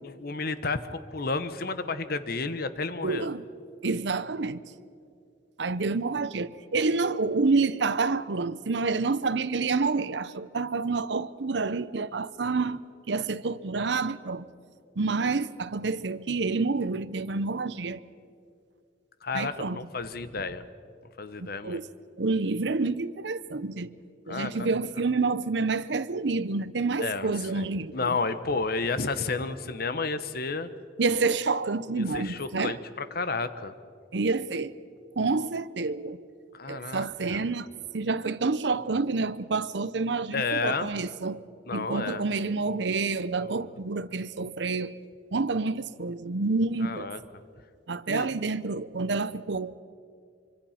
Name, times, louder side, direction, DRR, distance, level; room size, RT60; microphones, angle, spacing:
voice 1, 0.0-3.3 19.2-20.6 21.2-21.8 24.3-24.7 27.0-30.7 32.0-33.7 36.5-37.4 40.3-40.9 41.7-42.2 43.4-43.5 46.8-47.2 48.1-48.3, left 4 dB, 55° left, 1.0 m, -31 dB
voice 2, 3.0-3.4 3.8-4.6 5.6-12.8 13.1-14.5 15.0-18.0 19.3-19.8 21.4-21.9 22.2-23.9 24.3-28.2 31.0-32.8 34.1-34.7 35.2-36.2 36.7-37.7 37.9-41.4 41.7-44.9 45.3-47.1 47.9-49.7, right 3 dB, 70° right, 0.7 m, -28 dB
25.0 x 24.5 x 5.8 m
head